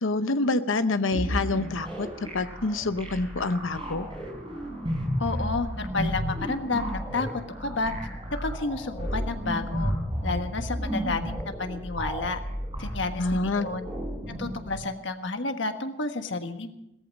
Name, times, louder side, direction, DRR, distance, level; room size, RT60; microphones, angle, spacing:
voice 1, 0.0-2.1 2.3-4.1 13.2-13.7, left 3 dB, 85° left, 11 dB, 0.8 m, -26 dB
sound 1, 1.1-14.7, equal, 25° right, 5.1 m, -33 dB
voice 2, 5.2-7.9 8.4-9.9 10.2-12.4 12.8-13.9 14.4-16.7, left 3 dB, 70° left, 7 dB, 1.4 m, -31 dB
17.5 x 14.0 x 5.3 m, 0.82 s
head